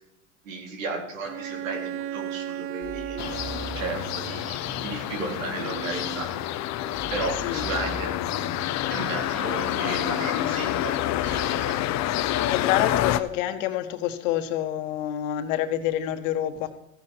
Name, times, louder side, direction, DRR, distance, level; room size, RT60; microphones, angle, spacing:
voice 1, 0.4-3.2 3.8-6.3 7.1-8.1 8.9-10.9 11.2-11.8, right 3 dB, 90° right, 2 dB, 4.1 m, -34 dB
Bowed string instrument, 1.2-4.8, right 11 dB, 35° right, 0.6 m, -36 dB
sound 1, 2.8-11.4, right 3 dB, 20° right, 3.8 m, -41 dB
sound 2, 3.2-13.2, left 13 dB, 45° left, 1.0 m, -28 dB
voice 2, 12.5-16.7, left 12 dB, 75° left, 8 dB, 1.7 m, -27 dB
15.0 x 10.5 x 4.9 m, 0.81 s
supercardioid pair, 110°, 38 cm